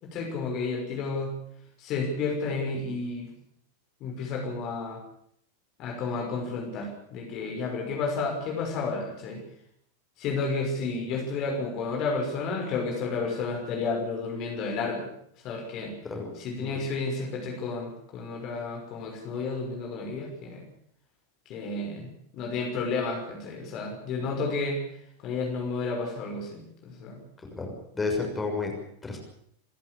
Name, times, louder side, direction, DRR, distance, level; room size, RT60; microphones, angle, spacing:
voice 1, 0.0-1.3 1.8-3.3 4.0-5.0 5.8-9.4 10.2-15.1 15.4-16.0 16.4-20.6 21.5-24.8 25.2-27.2, left 4 dB, 40° left, 1 dB, 6.0 m, -31 dB
voice 2, 27.5-28.7 29.0-29.2, left 3 dB, 15° left, 2 dB, 6.6 m, -31 dB
28.5 x 13.5 x 8.6 m, 0.69 s
figure-of-eight pair, 90°, 0 cm